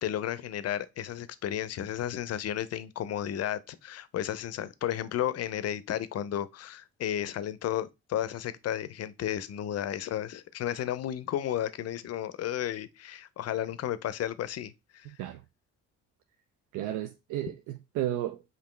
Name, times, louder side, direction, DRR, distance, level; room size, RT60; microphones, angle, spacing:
voice 1, 0.0-15.1, left 11 dB, 55° left, 0.5 m, -33 dB
voice 2, 15.0-15.4 16.7-18.4, right 13 dB, 85° right, 0.5 m, -33 dB
5.2 x 2.6 x 3.2 m
cardioid pair, 90°, 30 cm